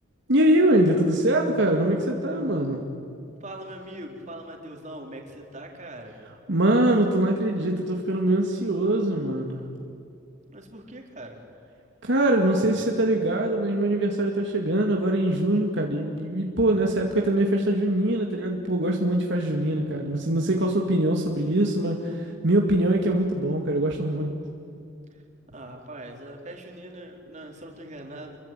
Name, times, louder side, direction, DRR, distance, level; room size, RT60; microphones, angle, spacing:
voice 1, 0.3-2.8 6.5-9.6 12.0-24.3, right 1 dB, 65° right, 1 dB, 2.3 m, -23 dB
voice 2, 3.4-6.2 10.5-11.4 25.1-25.2 25.5-28.4, right 1 dB, 35° right, 2 dB, 4.1 m, -41 dB
28.5 x 22.5 x 9.2 m, 2.5 s
head